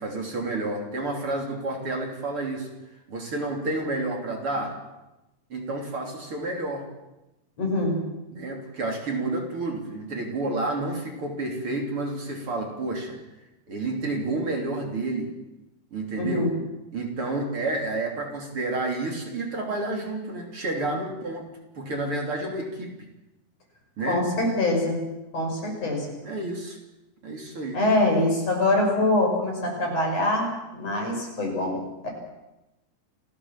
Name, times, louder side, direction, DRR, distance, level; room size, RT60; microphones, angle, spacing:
voice 1, 0.0-2.7 3.1-4.8 5.5-6.9 8.3-13.2 13.7-15.4 15.9-16.6 16.9-22.9 24.0-24.2 26.2-26.8 27.2-27.8, right 2 dB, 45° right, 1 dB, 4.0 m, -30 dB
voice 2, 7.6-8.0 16.2-16.5 24.1-25.0 25.3-26.1 27.7-32.1, left 1 dB, 55° left, 1 dB, 6.7 m, -24 dB
28.5 x 16.0 x 7.4 m, 0.98 s
omnidirectional pair, 3.5 m